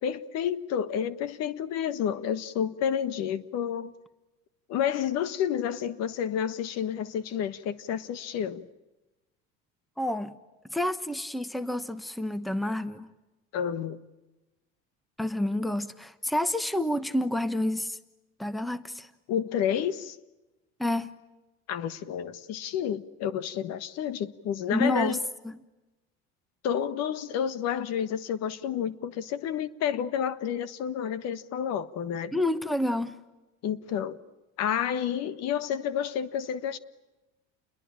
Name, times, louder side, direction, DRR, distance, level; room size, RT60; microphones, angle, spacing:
voice 1, 0.0-3.9 4.7-8.7 13.5-14.0 19.3-20.2 21.7-25.2 26.6-32.3 33.6-34.2 34.6-36.8, left 9 dB, 60° left, 1.5 m, -30 dB
voice 2, 10.0-10.3 10.7-13.1 15.2-18.0 18.4-19.1 20.8-21.1 24.7-25.2 25.4-25.5 32.3-33.1, left 1 dB, ahead, 1.1 m, -29 dB
29.0 x 22.0 x 8.9 m
cardioid pair, 130°, 29 cm